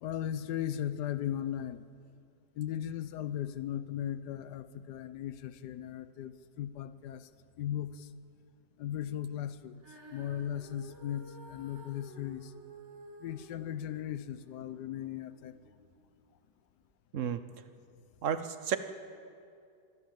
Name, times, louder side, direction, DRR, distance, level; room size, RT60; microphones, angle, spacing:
voice 1, 0.0-1.8 2.6-7.3 7.6-8.1 8.8-9.7 10.1-12.5 13.2-15.6, left 10 dB, 75° left, 14 dB, 1.3 m, -37 dB
Female singing, 9.8-16.1 16.8-16.9, right 1 dB, 40° right, 5.1 m, -53 dB
voice 2, 18.2-18.8, right 8 dB, 55° right, 11 dB, 1.1 m, -31 dB
24.0 x 15.5 x 7.6 m, 2.4 s
omnidirectional pair, 1.9 m